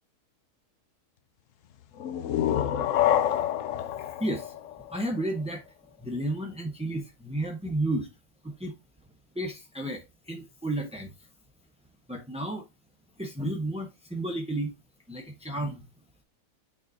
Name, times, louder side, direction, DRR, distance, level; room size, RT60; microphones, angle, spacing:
sound 1, 2.0-5.5, left 11 dB, 65° left, 0.8 m, -27 dB
voice 1, 4.2-4.5 4.9-5.6 6.0-8.1 8.4-8.7 9.3-11.1 12.1-12.6 13.2-14.8 15.1-15.8, right 1 dB, 5° right, 0.6 m, -32 dB
9.1 x 4.7 x 2.6 m
omnidirectional pair, 1.7 m